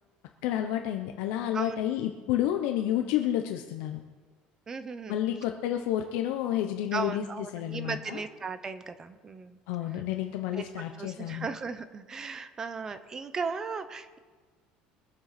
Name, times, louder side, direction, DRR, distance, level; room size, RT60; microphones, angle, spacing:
voice 1, 0.4-4.0 5.1-8.2 9.7-11.5, left 11 dB, 75° left, 5 dB, 0.9 m, -30 dB
voice 2, 4.7-5.2 6.9-9.6 10.5-10.7 11.0-14.2, right 5 dB, 20° right, 11 dB, 0.7 m, -36 dB
22.5 x 7.8 x 5.9 m, 1.4 s
cardioid pair, 175°, 3 cm